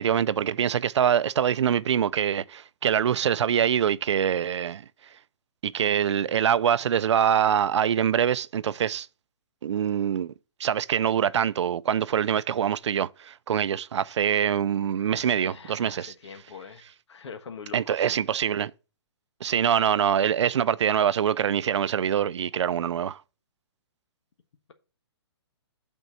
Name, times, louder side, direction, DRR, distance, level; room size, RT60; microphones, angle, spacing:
voice 1, 0.0-4.8 5.6-9.1 9.6-10.3 10.6-16.1 17.7-18.7 19.4-23.2, right 9 dB, 85° right, 0.5 m, -24 dB
voice 2, 15.1-18.2, left 6 dB, 80° left, 1.3 m, -44 dB
8.1 x 4.5 x 5.7 m
hypercardioid pair, 160°, 14 cm